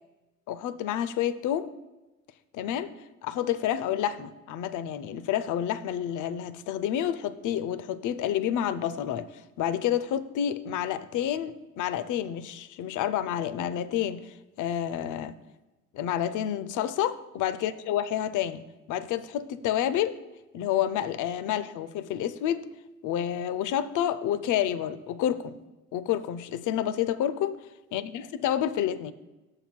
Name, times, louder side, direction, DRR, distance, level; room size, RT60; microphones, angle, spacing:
voice 1, 0.5-1.7 2.5-2.9 3.2-9.3 9.6-15.4 15.9-18.6 18.9-20.2 20.5-22.7 23.0-25.6 25.9-27.6 27.9-29.1, left 10 dB, 80° left, 14 dB, 0.5 m, -29 dB
6.6 x 5.9 x 4.4 m, 1.1 s
cardioid pair, 90°, 30 cm